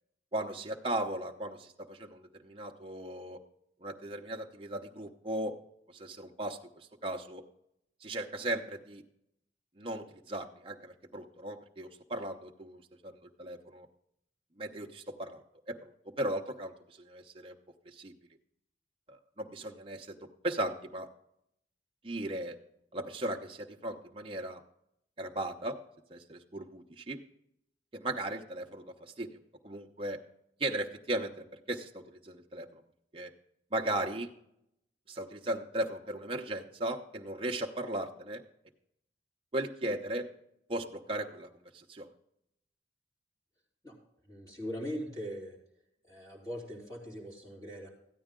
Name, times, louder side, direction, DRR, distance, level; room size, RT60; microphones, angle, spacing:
voice 1, 0.3-3.4 3.8-5.5 5.9-7.4 8.0-9.0 9.8-13.9 14.6-15.8 16.0-17.6 17.9-18.1 19.1-20.2 20.4-21.1 22.0-22.6 22.9-24.6 25.2-25.8 26.1-27.2 27.9-29.4 29.6-30.2 30.6-32.8 33.1-33.3 33.7-34.3 35.1-38.4 39.5-40.3 40.7-42.1, right 1 dB, 30° right, 1 dB, 0.8 m, -37 dB
voice 2, 44.3-45.5 46.1-47.9, equal, 20° left, -4 dB, 3.5 m, -40 dB
14.0 x 9.2 x 3.7 m, 0.77 s
head